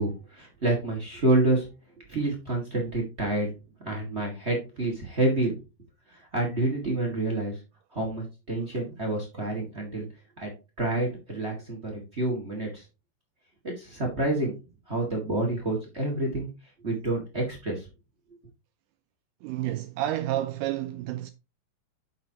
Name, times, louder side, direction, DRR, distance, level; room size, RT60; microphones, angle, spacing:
voice 1, 0.0-1.7 2.1-3.5 3.8-5.5 6.1-7.6 7.9-10.0 10.4-10.5 10.8-12.8 13.6-14.5 14.9-16.5 16.8-17.9, right 2 dB, 70° right, 0.6 m, -28 dB
voice 2, 19.4-21.3, right 13 dB, 85° right, 2.3 m, -30 dB
9.1 x 6.7 x 2.9 m
omnidirectional pair, 5.1 m